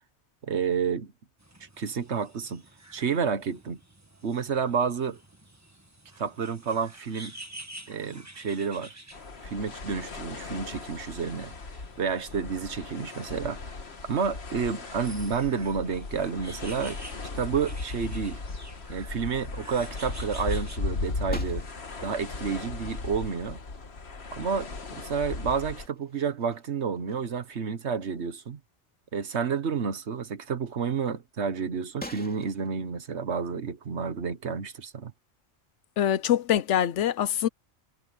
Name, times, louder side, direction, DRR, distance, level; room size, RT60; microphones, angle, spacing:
voice 1, 0.4-1.1 1.8-2.6 2.9-3.8 4.2-5.2 6.2-7.3 7.9-8.9 9.4-11.5 12.0-13.6 14.1-17.0 17.3-18.4 18.9-21.6 22.0-23.6 24.3-28.6 29.1-35.1, right 6 dB, 75° right, 1.5 m, -30 dB
sound 1, 1.4-20.8, right 1 dB, 15° right, 1.6 m, -49 dB
sound 2, 9.1-25.9, left 3 dB, 65° left, 1.8 m, -37 dB
sound 3, 21.3-22.2 24.0-24.1 24.6-25.3 25.7-27.6 28.0-28.2 28.8-28.9 32.0-32.7, equal, 10° left, 2.7 m, -45 dB
voice 2, 36.0-37.5, left 10 dB, 85° left, 1.0 m, -24 dB
omnidirectional pair, 1.2 m